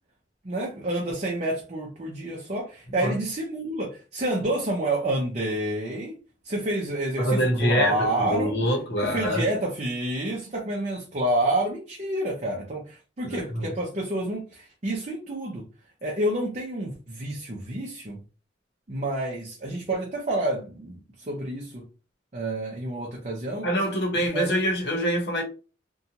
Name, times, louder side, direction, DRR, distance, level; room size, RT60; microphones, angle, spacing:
voice 1, 0.4-6.2 6.4-8.6 9.0-15.6 16.0-18.2 18.9-21.8 22.3-23.7 24.3-24.5, right 1 dB, 40° right, 0.5 m, -29 dB
voice 2, 7.2-9.6 13.2-13.8 23.6-25.4, equal, 60° left, 0.9 m, -25 dB
2.6 x 2.2 x 2.8 m
head